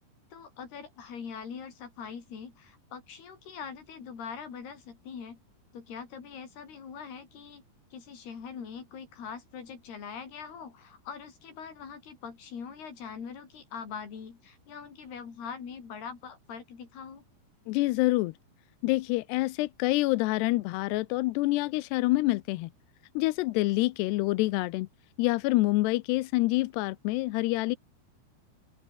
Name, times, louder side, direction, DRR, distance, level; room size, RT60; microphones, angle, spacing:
voice 1, 0.3-5.4 5.7-7.6 7.9-17.2, left 6 dB, 60° left, 6.4 m, -42 dB
voice 2, 17.7-18.3 18.8-22.7 23.2-24.9 25.2-27.8, left 20 dB, 80° left, 2.6 m, -27 dB
open air
omnidirectional pair, 5.2 m